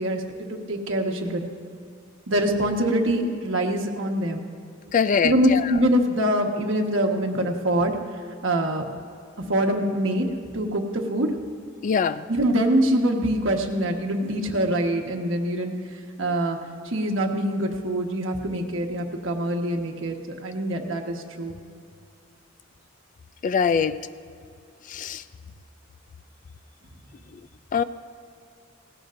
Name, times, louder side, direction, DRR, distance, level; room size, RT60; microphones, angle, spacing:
voice 1, 0.0-1.5 2.3-4.5 5.2-8.0 8.4-8.9 9.4-10.3 10.5-11.3 12.3-16.6 16.8-21.5, right 1 dB, 70° right, 2 dB, 1.4 m, -24 dB
voice 2, 4.9-5.6 11.8-12.2 23.4-23.9 24.9-25.2 27.7-27.8, left 6 dB, 40° left, 14 dB, 0.3 m, -22 dB
17.5 x 17.0 x 2.6 m, 2.5 s
head